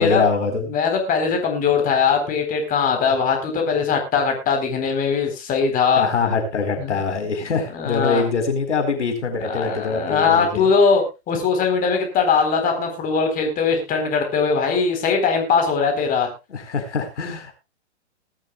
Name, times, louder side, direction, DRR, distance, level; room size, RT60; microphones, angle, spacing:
voice 1, 0.0-0.7 6.0-10.7 16.5-17.5, left 4 dB, 85° left, 7 dB, 4.5 m, -23 dB
voice 2, 0.7-6.0 6.8-7.3 7.7-8.2 9.5-16.3, left 5 dB, 25° left, 4 dB, 4.1 m, -20 dB
20.0 x 12.5 x 2.4 m, 0.27 s
hypercardioid pair, 130°, 35 cm